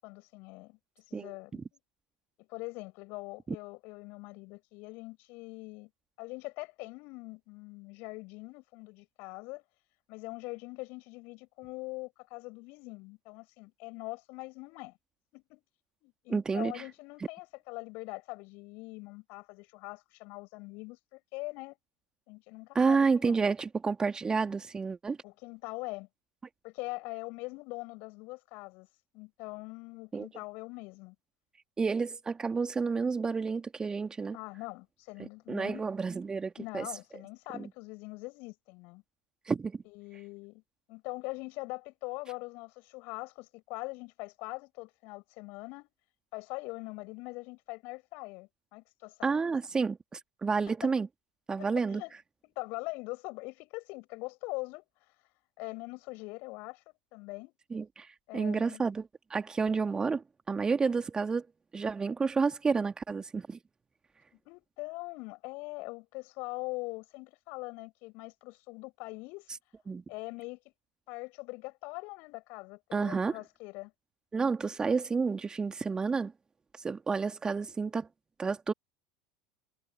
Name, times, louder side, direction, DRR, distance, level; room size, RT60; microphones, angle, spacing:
voice 1, 0.0-0.8 1.1-1.8 2.4-5.9 6.2-9.6 10.1-15.0 15.3-15.6 16.0-21.8 22.3-23.5 25.2-26.1 26.6-28.9 29.1-31.2 34.3-35.9 36.6-39.0 39.8-40.6 40.9-45.9 46.3-49.4 50.7-51.0 51.6-52.2 52.4-54.8 55.6-56.8 57.1-57.5 58.3-58.8 64.5-69.5 70.1-70.7 71.1-73.9, left 26 dB, 50° left, 7.7 m, -42 dB
voice 2, 16.3-16.8 22.7-25.2 30.1-30.3 31.8-34.4 35.2-36.9 37.5-37.6 39.5-39.8 49.2-51.1 51.5-52.0 57.7-58.1 58.3-61.5 61.7-63.6 69.9-70.0 72.9-73.4 74.3-76.3 76.8-78.1 78.4-78.7, right 4 dB, 20° right, 2.8 m, -30 dB
figure-of-eight pair, 75°, 4 cm